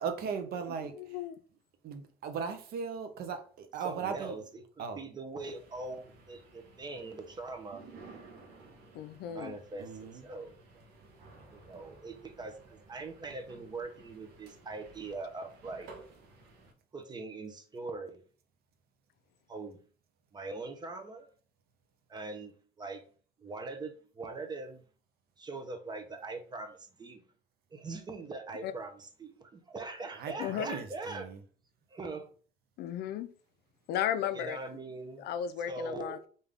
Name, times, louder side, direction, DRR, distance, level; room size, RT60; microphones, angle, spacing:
voice 1, 0.0-1.2 1.8-4.4 4.8-5.0 9.8-10.2 30.1-31.4, right 6 dB, 65° right, 0.7 m, -38 dB
voice 2, 1.0-1.4 8.9-9.5 28.6-28.7 30.4-30.7 32.8-33.3 33.9-34.6 35.2-36.2, left 9 dB, 75° left, 0.4 m, -34 dB
voice 3, 3.8-7.8 9.3-10.5 11.5-15.9 16.9-18.2 19.5-19.8 20.3-21.3 22.1-23.0 23.4-24.8 25.4-27.2 27.7-31.3 31.9-32.3 34.3-35.3 35.6-36.2, right 3 dB, 25° right, 0.7 m, -42 dB
sound 1, 5.4-16.7, right 3 dB, 90° right, 0.9 m, -55 dB
3.6 x 2.6 x 3.5 m
cardioid pair, 110°, 17 cm